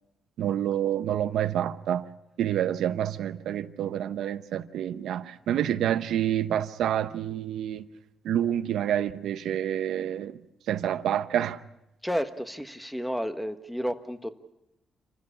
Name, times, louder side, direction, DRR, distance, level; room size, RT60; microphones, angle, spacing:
voice 1, 0.4-2.1 2.4-7.9 8.2-10.4 10.7-11.6, right 10 dB, 85° right, 0.9 m, -28 dB
voice 2, 12.0-14.3, equal, ahead, 1.3 m, -31 dB
27.5 x 15.5 x 8.6 m
cardioid pair, 120°, 0 cm